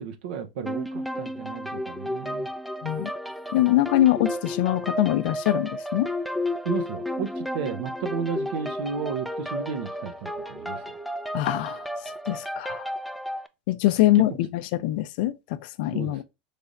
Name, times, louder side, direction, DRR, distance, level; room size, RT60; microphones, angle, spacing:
voice 1, 0.0-2.5 6.6-11.0 14.1-14.4 15.9-16.2, right 6 dB, 75° right, 0.7 m, -33 dB
sound 1, 0.7-13.5, left 1 dB, ahead, 0.3 m, -32 dB
voice 2, 3.5-6.1 11.3-11.9 12.2-12.9 13.7-16.2, left 15 dB, 65° left, 0.5 m, -23 dB
3.9 x 3.3 x 2.4 m
supercardioid pair, 135°, 5 cm